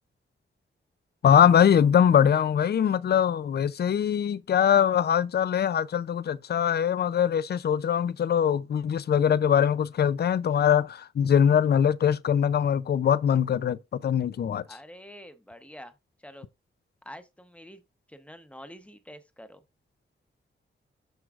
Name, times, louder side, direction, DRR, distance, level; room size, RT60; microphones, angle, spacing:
voice 1, 1.2-14.6, left 8 dB, 55° left, 0.4 m, -22 dB
voice 2, 14.7-16.5 17.0-17.8 18.1-19.6, equal, 5° left, 0.8 m, -47 dB
12.0 x 4.6 x 2.4 m
wide cardioid pair, 140°, 20 cm